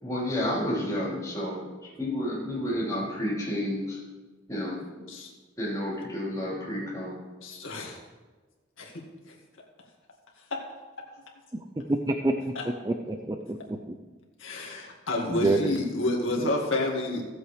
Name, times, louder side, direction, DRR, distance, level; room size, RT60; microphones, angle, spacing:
voice 1, 0.0-1.7 2.0-4.0 4.5-4.8 5.6-7.2, left 1 dB, 15° left, -6 dB, 3.8 m, -30 dB
voice 2, 7.4-8.0 8.8-9.0 10.5-10.6 14.4-17.2, left 2 dB, 85° left, -1 dB, 2.0 m, -29 dB
voice 3, 11.5-12.6 12.8-14.0 14.6-14.8 15.3-15.7 16.4-16.5, right 2 dB, 20° right, 4 dB, 0.4 m, -28 dB
15.5 x 7.9 x 3.3 m, 1.3 s
head